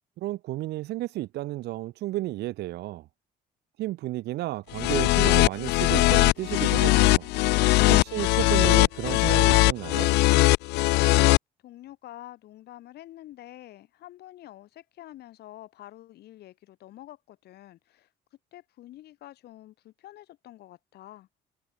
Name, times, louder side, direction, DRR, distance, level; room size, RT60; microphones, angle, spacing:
voice 1, 0.2-3.0 3.8-7.3 7.9-10.1, right 16 dB, 80° right, 2.6 m, -32 dB
sound 1, 4.7-11.4, left 21 dB, 90° left, 1.1 m, -20 dB
voice 2, 11.6-18.1 18.5-21.3, left 14 dB, 70° left, 7.3 m, -47 dB
cardioid pair, 110°, 17 cm